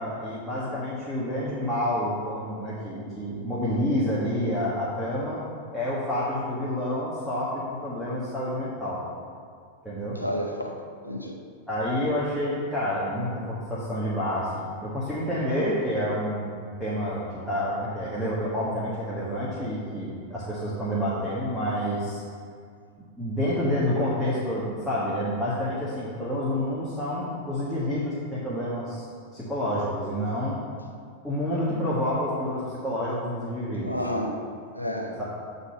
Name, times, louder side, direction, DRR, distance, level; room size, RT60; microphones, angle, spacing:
voice 1, 0.0-5.4 5.7-9.0 9.8-10.2 11.7-22.2 23.2-29.0 29.3-30.6 31.2-33.9 35.2-35.3, equal, ahead, -11 dB, 1.5 m, -28 dB
voice 2, 10.1-10.8 11.0-11.4 33.8-34.4 34.7-35.2, equal, 90° left, 2 dB, 0.7 m, -30 dB
8.1 x 4.1 x 5.6 m, 2.2 s
figure-of-eight pair, 90°, 0 cm